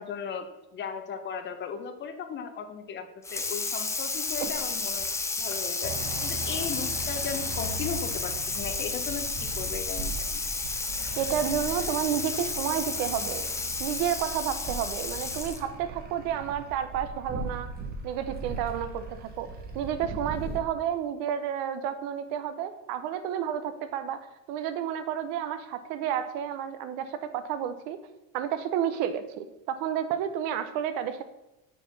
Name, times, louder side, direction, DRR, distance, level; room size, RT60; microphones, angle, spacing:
voice 1, 0.0-5.1 5.4-10.4, left 6 dB, 30° left, 8 dB, 0.7 m, -37 dB
Water tap faucet / Sink (filling or washing), 3.2-15.7, left 3 dB, 10° left, 0.4 m, -32 dB
sound 1, 5.8-20.6, right 3 dB, 25° right, 1.0 m, -39 dB
voice 2, 11.2-13.5 13.8-17.7 18.0-19.5 19.7-24.2 24.5-28.0 28.3-31.2, right 9 dB, 65° right, 11 dB, 0.9 m, -31 dB
7.0 x 4.4 x 5.7 m, 0.96 s
cardioid pair, 150°, 38 cm